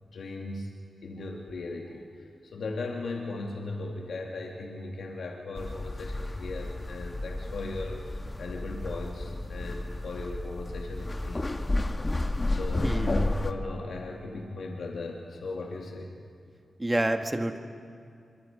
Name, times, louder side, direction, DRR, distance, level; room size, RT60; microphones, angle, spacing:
voice 1, 0.1-0.7 1.0-11.4 12.5-16.1, left 2 dB, 75° left, 0 dB, 2.3 m, -37 dB
sound 1, 5.6-13.5, left 2 dB, 30° left, 1.4 m, -32 dB
voice 2, 16.8-17.6, right 1 dB, 20° right, 5 dB, 2.0 m, -28 dB
25.5 x 23.5 x 5.2 m, 2.3 s
supercardioid pair, 45°, 0 cm